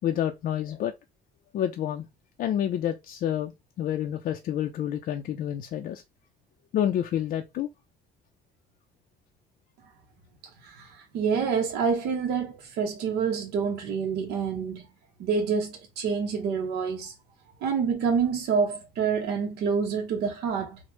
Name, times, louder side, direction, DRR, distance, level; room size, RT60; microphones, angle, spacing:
voice 1, 0.0-0.9 1.5-2.1 2.4-3.5 3.8-6.0 6.7-7.7, left 10 dB, 55° left, 0.4 m, -28 dB
voice 2, 10.6-14.8 15.2-17.1 17.6-20.8, right 6 dB, 75° right, 0.7 m, -27 dB
3.1 x 2.0 x 3.0 m
cardioid pair, 110°, 17 cm